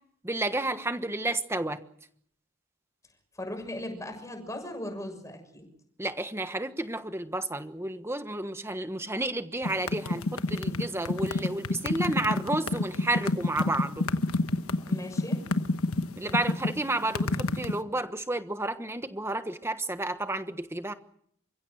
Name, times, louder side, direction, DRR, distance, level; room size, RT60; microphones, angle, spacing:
voice 1, 0.2-1.8 6.0-14.1 16.2-20.9, right 2 dB, 10° right, 9 dB, 1.2 m, -31 dB
voice 2, 3.3-5.7 14.9-15.4, left 1 dB, 15° left, 4 dB, 6.5 m, -38 dB
sound 1, 9.6-17.8, left 2 dB, 80° left, 1.2 m, -28 dB
29.5 x 16.0 x 8.1 m, 0.69 s
head